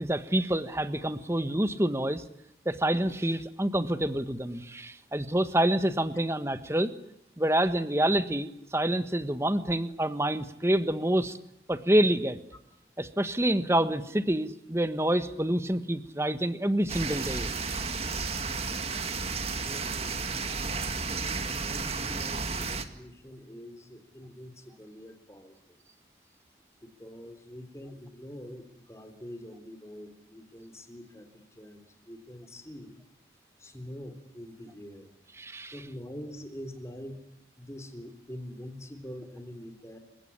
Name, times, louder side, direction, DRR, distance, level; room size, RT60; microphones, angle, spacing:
voice 1, 0.0-2.2 2.6-6.9 7.4-11.4 11.7-12.4 13.0-17.5 35.4-35.7, right 1 dB, 15° right, 11 dB, 1.4 m, -27 dB
sound 1, 16.9-22.8, right 4 dB, 35° right, 2.1 m, -32 dB
voice 2, 19.4-20.2 21.0-25.5 26.8-33.0 33.6-35.1 35.7-37.2 37.6-40.0, equal, 15° left, 7 dB, 3.6 m, -45 dB
29.5 x 17.0 x 9.9 m, 0.79 s
head